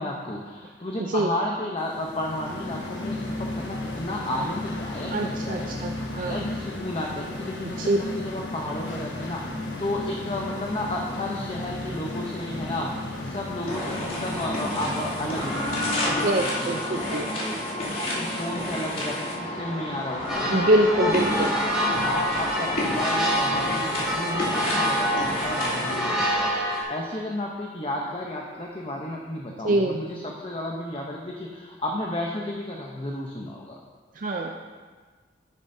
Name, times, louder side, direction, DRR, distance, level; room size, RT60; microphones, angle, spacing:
voice 1, 0.0-17.8 18.1-33.8, left 1 dB, 30° left, -1 dB, 0.7 m, -33 dB
sound 1, 1.9-16.4, left 2 dB, 90° left, 1.2 m, -34 dB
voice 2, 5.1-6.4 7.8-8.0 16.0-17.3 20.5-21.5 29.6-29.9 34.2-34.5, right 1 dB, 50° right, 2 dB, 0.5 m, -24 dB
sound 2, 13.7-26.2, left 1 dB, 55° left, 2.6 m, -30 dB
sound 3, 20.3-26.8, equal, ahead, 2.7 m, -27 dB
9.9 x 9.8 x 2.7 m, 1.5 s
head